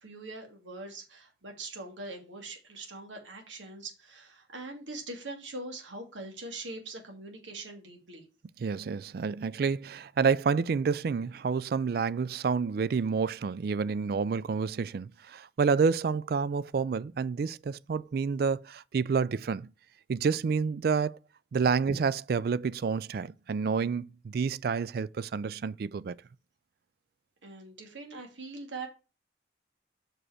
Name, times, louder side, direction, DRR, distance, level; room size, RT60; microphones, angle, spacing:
voice 1, 0.0-8.2 27.4-28.9, right 2 dB, 85° right, 2.3 m, -42 dB
voice 2, 8.6-19.7 20.1-21.2 21.5-26.2, right 5 dB, 55° right, 0.3 m, -29 dB
6.2 x 5.1 x 4.8 m
head